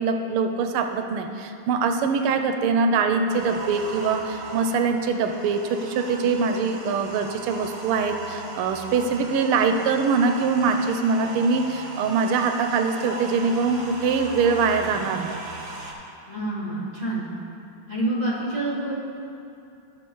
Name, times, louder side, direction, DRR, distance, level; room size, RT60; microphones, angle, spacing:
voice 1, 0.0-15.4, right 5 dB, 85° right, 6 dB, 1.5 m, -23 dB
sound 1, 3.3-15.9, right 2 dB, 65° right, 1.7 m, -38 dB
voice 2, 16.3-17.3 17.9-18.9, right 2 dB, 25° left, -11 dB, 2.4 m, -27 dB
13.5 x 6.8 x 3.1 m, 2.6 s
omnidirectional pair, 2.3 m